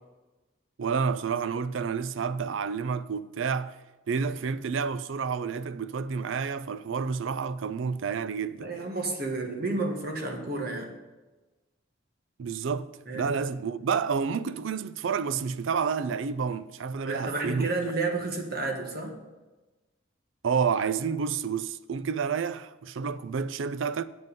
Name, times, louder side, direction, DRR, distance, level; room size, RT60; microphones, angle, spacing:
voice 1, 0.8-3.7 4.1-8.7 12.4-12.9 13.1-17.9 20.4-24.0, right 6 dB, 70° right, 0.4 m, -29 dB
voice 2, 8.6-10.9 13.1-13.3 17.0-19.1, right 3 dB, 50° right, 1.5 m, -31 dB
7.7 x 7.6 x 5.4 m
head